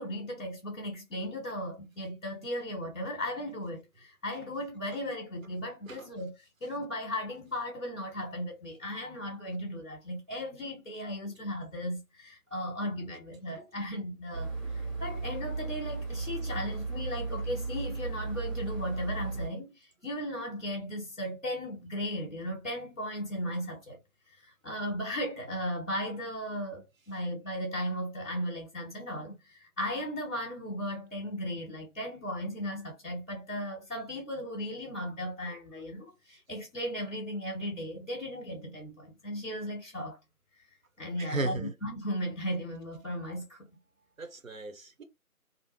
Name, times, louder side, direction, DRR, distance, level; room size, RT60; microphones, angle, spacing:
voice 1, 0.0-24.0 24.4-40.2 41.0-43.7, equal, 55° left, 1.1 m, -36 dB
sound 1, 14.3-19.5, right 3 dB, 35° right, 1.6 m, -35 dB
voice 2, 41.2-41.7 44.2-45.0, right 2 dB, 60° right, 0.7 m, -35 dB
2.6 x 2.1 x 2.9 m
figure-of-eight pair, 170°, 45 cm